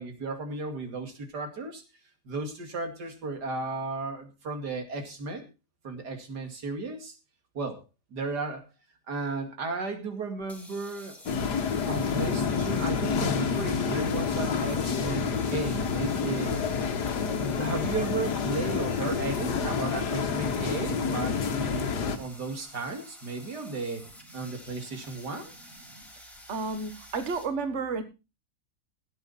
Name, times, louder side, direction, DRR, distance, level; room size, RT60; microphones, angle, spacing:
voice 1, 0.0-1.8 2.3-5.5 5.8-7.1 7.5-7.8 8.1-8.7 9.1-11.2 11.9-16.6 17.4-25.5, right 3 dB, 85° right, 6 dB, 2.9 m, -34 dB
sound 1, 10.4-27.5, equal, ahead, 3.4 m, -50 dB
sound 2, 11.3-22.2, left 6 dB, 80° left, 1.9 m, -28 dB
voice 2, 26.5-28.0, right 4 dB, 45° right, 9 dB, 1.7 m, -31 dB
17.0 x 8.8 x 4.1 m, 0.28 s
omnidirectional pair, 1.7 m